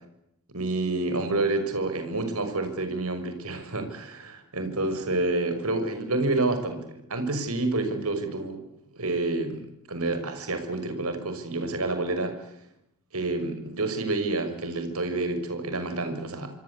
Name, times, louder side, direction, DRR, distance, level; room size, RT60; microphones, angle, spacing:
voice 1, 0.5-8.6 8.9-12.3 13.1-16.5, right 2 dB, 75° right, 8 dB, 6.1 m, -28 dB
26.5 x 25.5 x 8.4 m, 0.80 s
head